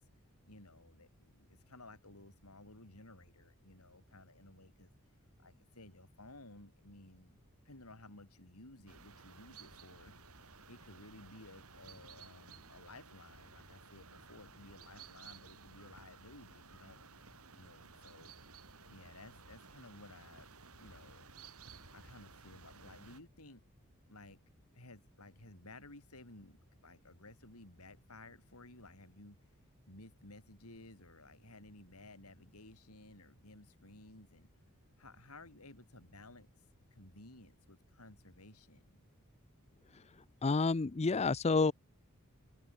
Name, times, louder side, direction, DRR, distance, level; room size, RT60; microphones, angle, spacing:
voice 1, 0.5-4.9 5.4-7.4 7.6-10.1 10.7-17.1 17.5-18.3 18.9-20.5 20.8-21.3 21.9-23.6 24.1-24.4 24.7-26.6 26.8-29.4 29.9-34.5 35.0-36.5 36.9-39.0, left 2 dB, 85° left, 6.6 m, -56 dB
sound 1, 8.9-23.2, right 5 dB, 80° right, 5.9 m, -56 dB
voice 2, 40.4-41.7, left 4 dB, 30° left, 0.5 m, -29 dB
head